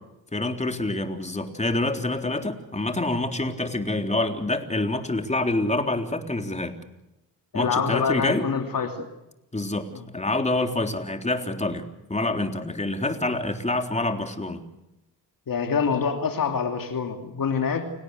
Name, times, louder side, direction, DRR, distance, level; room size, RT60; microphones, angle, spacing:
voice 1, 0.3-6.8 7.5-8.5 9.5-14.6, left 2 dB, 15° left, 5 dB, 3.7 m, -27 dB
voice 2, 7.5-9.1 9.9-10.0 15.5-17.9, left 6 dB, 60° left, 5 dB, 2.9 m, -26 dB
30.0 x 18.0 x 8.2 m, 0.92 s
cardioid pair, 65°, 39 cm